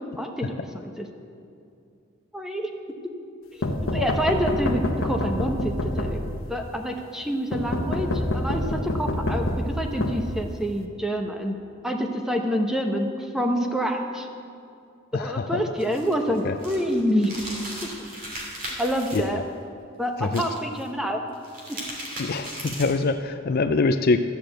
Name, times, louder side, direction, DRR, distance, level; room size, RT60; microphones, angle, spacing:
voice 1, 0.2-1.1 2.3-2.7 3.6-6.2 6.5-11.6 11.8-14.3 15.1-17.3 18.8-19.4 20.0-21.2 21.7-21.8, equal, 5° right, 3 dB, 0.9 m, -27 dB
sound 1, 3.6-6.6 7.5-10.8, left 1 dB, 90° left, 1.1 m, -27 dB
voice 2, 15.1-15.6 16.4-16.6 19.1-19.4 20.2-20.4 22.2-24.2, left 3 dB, 50° left, 8 dB, 0.4 m, -24 dB
sound 2, 15.8-19.2 20.2-20.8 21.3-23.1, right 1 dB, 45° right, 2.8 m, -37 dB
13.5 x 6.8 x 7.7 m, 2.5 s
head